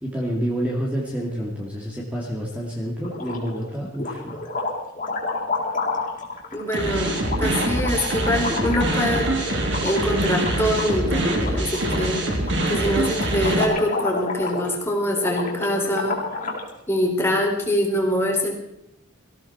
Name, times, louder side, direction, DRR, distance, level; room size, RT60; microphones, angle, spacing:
voice 1, 0.0-4.4, equal, 5° right, -3 dB, 2.4 m, -28 dB
sound 1, 3.0-3.6 3.9-16.7, left 3 dB, 40° left, 3.9 m, -30 dB
voice 2, 6.5-9.3 9.8-12.3 12.7-16.2 16.9-18.5, equal, 10° left, 0 dB, 3.4 m, -24 dB
sound 2, 6.7-13.6, right 1 dB, 55° right, 3.2 m, -24 dB
19.5 x 15.5 x 4.4 m, 0.80 s
head